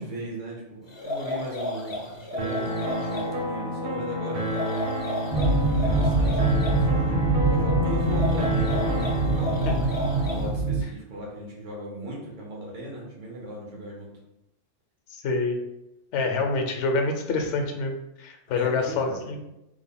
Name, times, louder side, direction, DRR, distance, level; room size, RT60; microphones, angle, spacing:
voice 1, 0.0-4.9 5.7-9.7 10.2-14.1 18.5-19.3, right 1 dB, 70° right, -2 dB, 1.3 m, -37 dB
sound 1, 0.9-3.3 4.4-6.8 8.0-10.6, left 1 dB, 50° left, 0.3 m, -33 dB
sound 2, 2.4-10.4, left 1 dB, 55° right, 0.8 m, -30 dB
sound 3, 5.3-10.8, right 3 dB, 20° right, 0.4 m, -24 dB
voice 2, 15.1-15.6 16.1-19.4, left 3 dB, 70° left, 3 dB, 0.9 m, -27 dB
3.4 x 2.1 x 3.6 m, 0.90 s
omnidirectional pair, 1.3 m